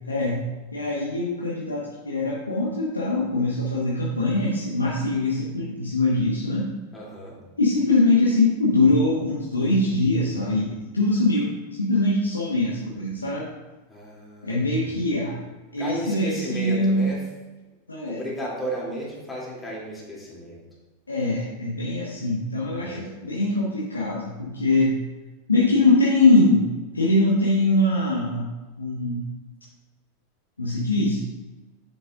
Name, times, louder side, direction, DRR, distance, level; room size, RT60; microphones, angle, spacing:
voice 1, 0.1-0.4 0.7-6.7 7.6-13.5 14.4-15.4 15.7-17.1 17.9-18.2 21.1-24.9 25.5-26.6 26.9-28.5 28.8-29.2 30.6-31.2, left 2 dB, 80° left, -5 dB, 1.2 m, -22 dB
voice 2, 6.9-7.4 13.9-15.1 15.8-17.2 18.1-20.6 22.7-23.1, equal, 10° left, -5 dB, 2.9 m, -34 dB
9.7 x 7.7 x 2.5 m, 1.2 s
figure-of-eight pair, 90°, 0 cm